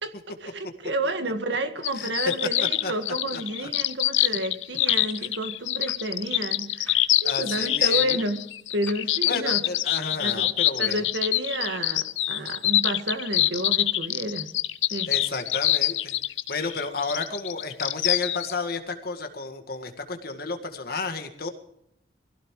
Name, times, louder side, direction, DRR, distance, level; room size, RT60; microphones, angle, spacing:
voice 1, 0.0-8.4 8.7-9.6 10.2-10.5 10.8-14.5 14.9-15.1, right 1 dB, 70° right, 1.8 m, -30 dB
sound 1, 1.8-18.5, left 14 dB, 85° left, 0.7 m, -25 dB
sound 2, 4.9-5.1 5.9-6.0 6.9-7.1 7.9-8.0 8.9-9.0, left 2 dB, 10° left, 1.4 m, -45 dB
voice 2, 7.2-8.2 9.3-11.0 15.1-16.2 16.5-21.5, left 3 dB, 55° left, 1.9 m, -32 dB
23.5 x 16.5 x 3.2 m
head